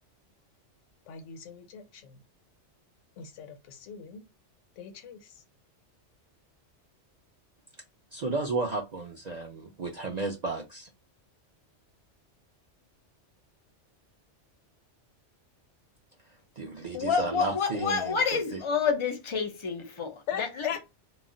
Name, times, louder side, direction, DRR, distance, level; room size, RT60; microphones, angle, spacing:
voice 1, 1.1-2.2 3.2-4.3 4.8-5.4 20.3-20.8, left 8 dB, 80° left, 0.9 m, -39 dB
voice 2, 8.1-10.9 16.6-18.6, right 3 dB, 55° right, 0.4 m, -33 dB
voice 3, 16.9-20.8, left 6 dB, 45° left, 0.4 m, -29 dB
2.3 x 2.1 x 3.7 m
omnidirectional pair, 1.2 m